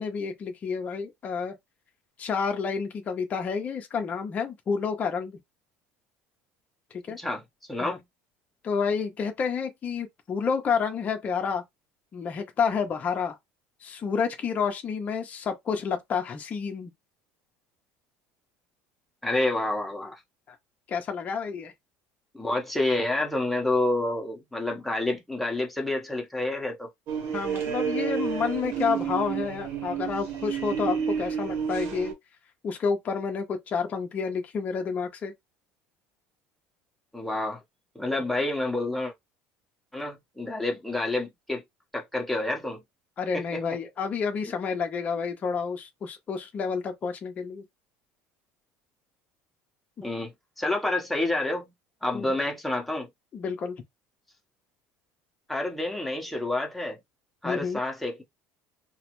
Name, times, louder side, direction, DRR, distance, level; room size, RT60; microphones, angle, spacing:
voice 1, 0.0-1.6 2.2-5.4 6.9-7.2 7.8-8.0 8.6-11.6 12.1-13.4 13.8-16.9 20.5-20.6 20.9-21.7 27.3-32.1 32.6-35.3 43.2-47.6 52.1-52.4 53.3-53.8 57.4-57.8, left 6 dB, 30° left, 0.6 m, -29 dB
voice 2, 7.7-8.0 19.2-20.2 22.3-26.9 37.1-37.6 37.9-39.1 39.9-41.6 41.9-42.8 50.0-51.7 52.0-53.1 55.5-57.0 57.4-58.2, left 2 dB, 5° left, 1.0 m, -28 dB
sound 1, 27.1-32.1, right 7 dB, 60° right, 1.0 m, -30 dB
3.0 x 2.0 x 3.0 m
cardioid pair, 130°, 5 cm